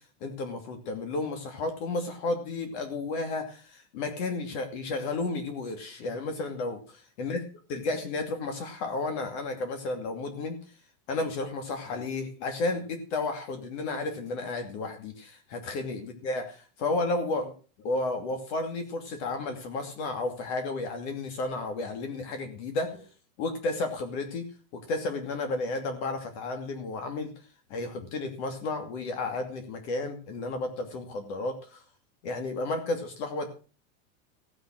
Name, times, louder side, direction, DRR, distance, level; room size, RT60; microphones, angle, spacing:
voice 1, 0.0-7.4 7.7-10.6 11.1-17.5 17.8-23.1 23.4-27.3 27.7-31.8 32.2-33.5, left 2 dB, 55° left, 6 dB, 2.7 m, -32 dB
16.0 x 7.9 x 6.2 m, 0.36 s
supercardioid pair, 165°, 39 cm